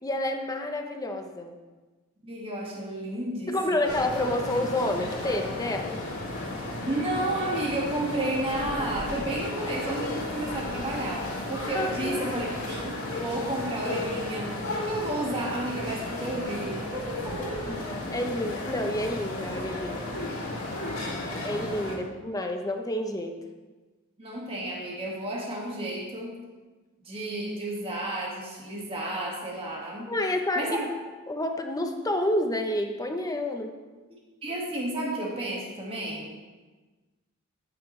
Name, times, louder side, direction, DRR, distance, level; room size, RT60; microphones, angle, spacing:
voice 1, 0.0-1.6 3.5-6.0 11.7-12.2 17.6-20.1 21.4-23.4 30.1-30.8 31.3-33.7, left 1 dB, 15° left, 4 dB, 0.9 m, -29 dB
voice 2, 2.2-4.0 6.8-14.5 14.8-17.8 21.8-22.0 24.2-26.3 27.0-30.1 30.6-30.9 34.4-36.3, right 1 dB, 25° right, -4 dB, 2.0 m, -32 dB
sound 1, 3.8-21.9, left 2 dB, 85° left, 2.6 m, -34 dB
12.0 x 8.9 x 3.3 m, 1.3 s
head